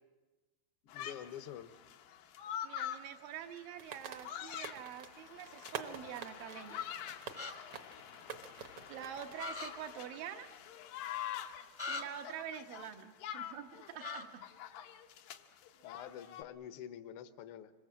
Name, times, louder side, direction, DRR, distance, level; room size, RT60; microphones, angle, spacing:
sound 1, 0.9-16.4, left 10 dB, 90° left, 2.8 m, -46 dB
voice 1, 0.9-1.7 15.8-17.7, left 10 dB, 70° left, 10 dB, 1.3 m, -47 dB
voice 2, 2.6-6.9 8.5-10.5 11.9-14.4, right 9 dB, 85° right, 5 dB, 2.9 m, -46 dB
sound 2, 3.8-9.3, right 7 dB, 60° right, 1.4 m, -48 dB
sound 3, 7.3-7.5 9.4-9.7 11.8-12.0 14.0-14.2, left 4 dB, 40° left, 0.6 m, -40 dB
25.5 x 22.0 x 7.5 m, 1.2 s
omnidirectional pair, 3.9 m